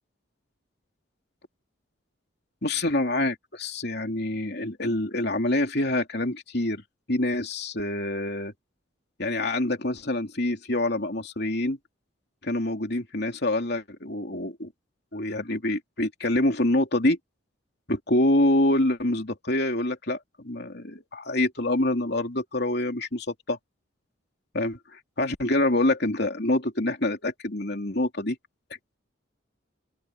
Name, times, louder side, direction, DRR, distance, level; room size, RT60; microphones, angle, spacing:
voice 1, 2.6-6.8 7.1-8.5 9.2-11.8 12.4-14.7 15.1-17.2 17.9-20.2 20.4-23.6 24.5-28.4, left 1 dB, 55° left, 3.2 m, -26 dB
open air
head